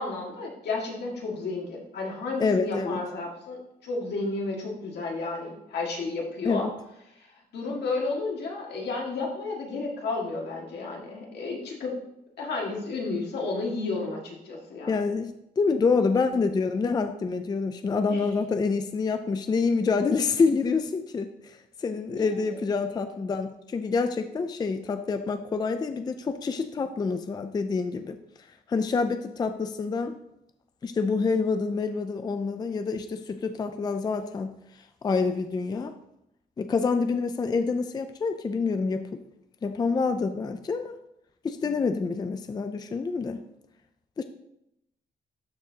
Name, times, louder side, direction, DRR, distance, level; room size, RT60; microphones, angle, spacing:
voice 1, 0.0-6.7 7.2-7.3 7.5-11.9 12.4-15.0 18.1-18.3 22.1-22.7, left 3 dB, 80° left, -2 dB, 2.0 m, -32 dB
voice 2, 2.4-3.0 6.4-6.7 14.9-28.2 28.7-30.2 30.8-34.6 35.0-35.9 36.6-39.2 39.6-40.9 41.4-43.4 44.2-44.3, left 4 dB, 25° left, 8 dB, 0.4 m, -27 dB
12.5 x 4.7 x 2.8 m, 0.81 s
wide cardioid pair, 160°, 17 cm